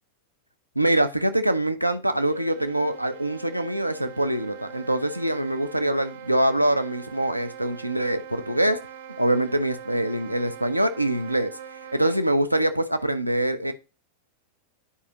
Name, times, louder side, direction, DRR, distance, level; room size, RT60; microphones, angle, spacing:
voice 1, 0.8-8.8 9.2-11.5 11.9-13.7, right 1 dB, 85° right, 0.7 m, -24 dB
sound 1, 2.1-12.4, right 8 dB, 65° right, 1.0 m, -42 dB
9.8 x 4.9 x 2.9 m
figure-of-eight pair, 90°, 0 cm